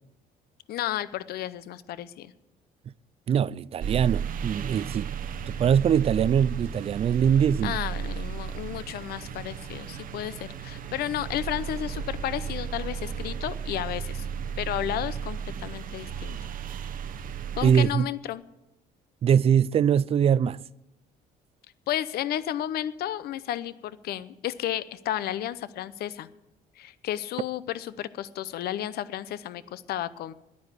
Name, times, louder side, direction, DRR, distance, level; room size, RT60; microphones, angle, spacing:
voice 1, 0.7-2.3 7.6-14.3 14.6-16.4 17.6-18.4 21.9-26.3 26.8-30.3, left 12 dB, 70° left, 0.7 m, -32 dB
voice 2, 3.3-7.8 17.6-18.1 19.2-20.6, right 8 dB, 35° right, 0.4 m, -23 dB
sound 1, 3.8-17.9, right 7 dB, 55° right, 0.9 m, -34 dB
10.5 x 9.5 x 9.7 m
cardioid pair, 110°, 17 cm